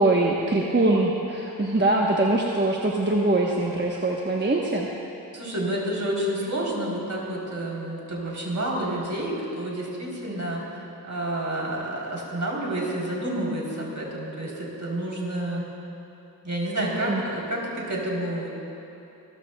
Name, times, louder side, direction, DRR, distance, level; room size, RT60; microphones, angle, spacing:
voice 1, 0.0-4.9 17.0-17.2, right 2 dB, 30° right, -3 dB, 1.0 m, -23 dB
voice 2, 5.3-15.6 16.4-18.5, right 1 dB, 50° right, -4 dB, 3.3 m, -29 dB
25.5 x 14.0 x 2.2 m, 2.9 s
wide cardioid pair, 85°, 38 cm